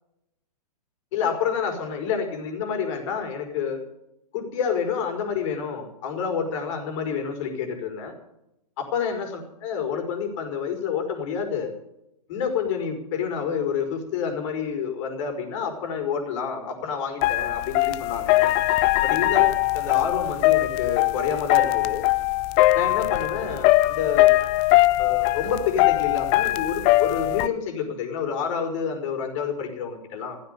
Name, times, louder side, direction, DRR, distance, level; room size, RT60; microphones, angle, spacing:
voice 1, 1.1-3.8 4.3-8.2 8.8-11.7 12.3-18.5 19.0-22.0 22.7-24.3 25.0-30.4, left 6 dB, 50° left, 5 dB, 5.3 m, -28 dB
sound 1, 17.2-27.5, left 18 dB, 35° left, 0.7 m, -21 dB
15.0 x 14.0 x 6.9 m, 0.83 s
hypercardioid pair, 130°, 21 cm